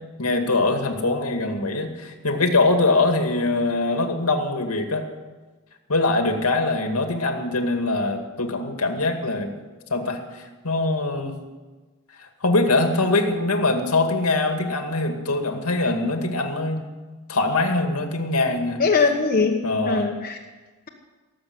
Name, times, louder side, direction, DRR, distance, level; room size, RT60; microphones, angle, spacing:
voice 1, 0.2-5.1 5.9-9.5 9.9-11.4 12.2-16.9 17.3-18.8 19.6-20.1, left 2 dB, 90° left, 4 dB, 2.2 m, -23 dB
voice 2, 18.8-20.4, left 4 dB, 40° left, 0 dB, 1.3 m, -21 dB
18.0 x 7.7 x 9.7 m, 1.3 s
head